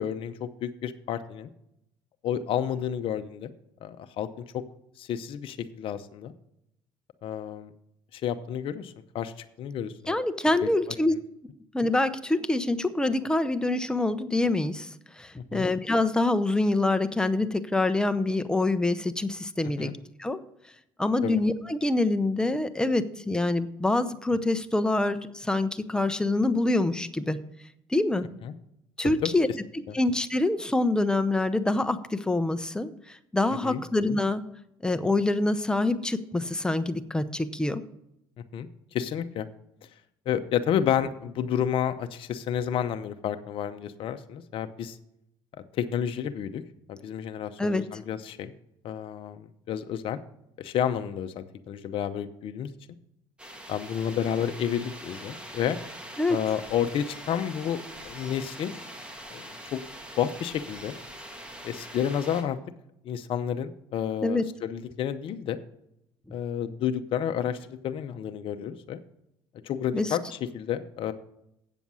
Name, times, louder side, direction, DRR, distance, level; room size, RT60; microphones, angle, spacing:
voice 1, 0.0-1.5 2.2-3.5 3.8-4.4 5.0-6.3 7.2-7.7 8.1-10.2 10.6-10.7 15.5-15.7 19.8-19.9 21.2-21.4 28.4-28.5 29.0-29.3 33.6-33.8 38.5-39.5 40.3-45.0 45.7-46.6 46.9-48.5 48.8-50.2 50.6-52.7 53.7-55.8 56.3-58.8 59.3-59.8 60.2-61.0 61.6-62.6 63.0-65.6 66.3-69.0 69.6-71.1, left 9 dB, 55° left, 9 dB, 0.7 m, -30 dB
voice 2, 10.1-11.1 11.7-14.9 15.2-20.4 21.0-27.4 27.9-28.3 29.0-29.5 29.9-34.4 34.8-37.8 47.6-47.9 56.2-56.4 64.2-64.5 69.9-70.2, left 2 dB, 5° left, 11 dB, 0.7 m, -26 dB
sound 1, 53.4-62.4, equal, 10° right, 1.9 m, -43 dB
8.3 x 7.0 x 6.1 m, 0.79 s
supercardioid pair, 95°, 11 cm